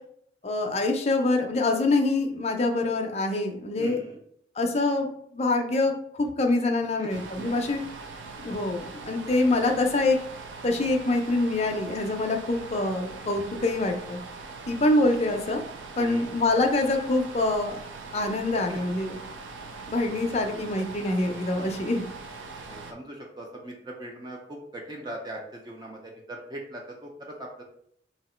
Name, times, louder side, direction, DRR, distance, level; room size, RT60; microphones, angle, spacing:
voice 1, 0.4-4.0 4.6-7.8 8.4-10.2 10.6-14.2 14.7-15.6 16.0-17.8 18.1-19.2 19.9-22.0, left 2 dB, 35° left, 3 dB, 0.5 m, -25 dB
voice 2, 3.8-4.2 7.0-7.1 7.4-7.5 16.0-16.3 18.7-18.8 20.1-20.7 22.7-27.6, right 1 dB, 20° right, 0 dB, 0.4 m, -40 dB
sound 1, 7.1-22.9, right 4 dB, 90° right, 0.5 m, -41 dB
2.9 x 2.8 x 4.2 m, 0.69 s
head